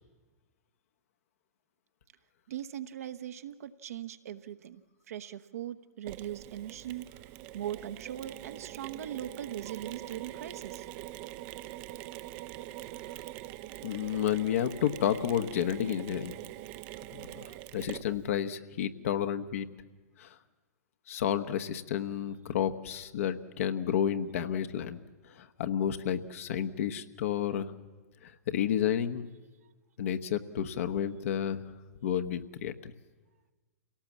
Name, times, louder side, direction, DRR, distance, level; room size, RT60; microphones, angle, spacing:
voice 1, 2.5-7.1 7.5-10.9, right 11 dB, 60° right, 10 dB, 1.0 m, -40 dB
Mechanisms, 6.1-18.4, right 15 dB, 40° right, 0.7 m, -44 dB
voice 2, 13.8-16.3 17.1-19.6 20.2-20.4 21.1-25.0 25.3-27.7 28.2-29.3 30.0-31.6 32.0-32.9, left 9 dB, 55° left, 9 dB, 1.2 m, -31 dB
28.0 x 17.5 x 7.3 m, 1.3 s
figure-of-eight pair, 110°, 9 cm